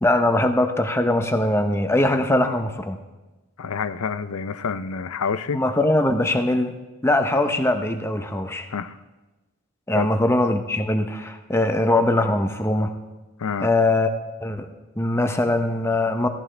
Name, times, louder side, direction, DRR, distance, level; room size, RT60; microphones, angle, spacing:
voice 1, 0.0-3.0 5.5-6.8 7.0-8.7 9.9-12.9 13.6-14.1 14.4-14.7 15.0-16.3, left 1 dB, 10° left, 0.7 m, -21 dB
voice 2, 3.6-5.6 8.7-9.0 9.9-10.1 13.4-13.7, left 6 dB, 85° left, 0.6 m, -27 dB
17.5 x 15.5 x 3.3 m
head